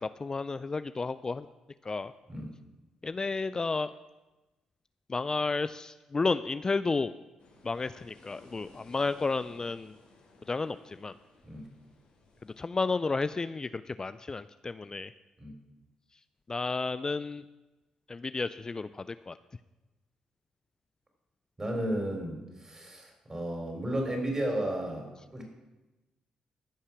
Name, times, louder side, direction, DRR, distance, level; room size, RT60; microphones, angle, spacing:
voice 1, 0.0-1.5 1.9-2.1 3.0-3.9 5.1-7.1 7.6-9.9 10.5-11.1 12.6-15.1 16.5-17.4 18.1-19.4, left 4 dB, 30° left, 14 dB, 0.3 m, -32 dB
sound 1, 7.4-12.6, left 3 dB, 75° left, 2.8 m, -58 dB
voice 2, 21.6-25.4, right 1 dB, 25° right, 2 dB, 3.8 m, -33 dB
14.5 x 5.6 x 6.0 m, 1.1 s
supercardioid pair, 60°, 2 cm